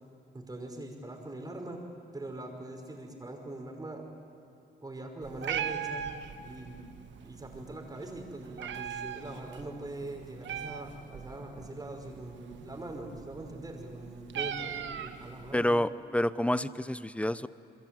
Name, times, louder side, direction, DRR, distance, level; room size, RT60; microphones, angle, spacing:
voice 1, 0.3-1.8 2.1-4.1 4.8-6.1 6.4-6.9 7.2-15.9, right 2 dB, 20° right, 3 dB, 5.3 m, -42 dB
Meow, 5.2-15.6, right 8 dB, 70° right, 1.4 m, -40 dB
voice 2, 15.5-17.5, left 1 dB, 5° left, 15 dB, 0.8 m, -28 dB
28.5 x 22.0 x 9.1 m, 2.6 s
cardioid pair, 90°, 20 cm